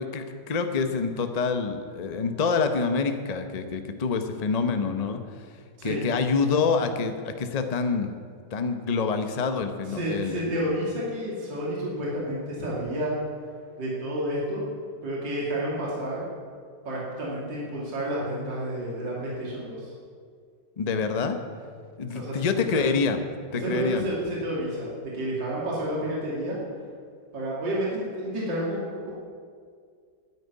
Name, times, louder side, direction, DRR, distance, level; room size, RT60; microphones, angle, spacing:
voice 1, 0.0-5.2 5.8-8.1 8.5-10.6 20.8-21.4 22.0-23.2 23.5-24.0, left 5 dB, 55° left, 7 dB, 0.4 m, -26 dB
voice 2, 9.8-13.1 13.8-14.6 15.0-16.2 16.8-19.9 22.1-22.8 23.5-26.6 27.3-29.1, right 1 dB, 65° right, -6 dB, 3.3 m, -30 dB
9.7 x 9.3 x 9.6 m, 2.1 s
omnidirectional pair, 2.1 m